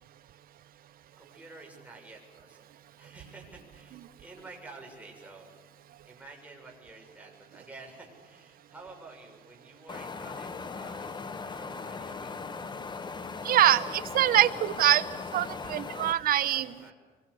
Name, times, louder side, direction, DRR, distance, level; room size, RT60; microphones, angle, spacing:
voice 1, 1.2-2.7 3.0-5.5 6.1-12.8 16.5-16.9, right 3 dB, 10° right, 0 dB, 7.0 m, -50 dB
Wind, 9.9-16.1, left 4 dB, 25° left, 1.2 m, -39 dB
voice 2, 13.4-15.0 15.3-16.7, right 12 dB, 60° right, 11 dB, 1.1 m, -24 dB
25.0 x 23.0 x 8.4 m, 1.3 s
cardioid pair, 110°, 17 cm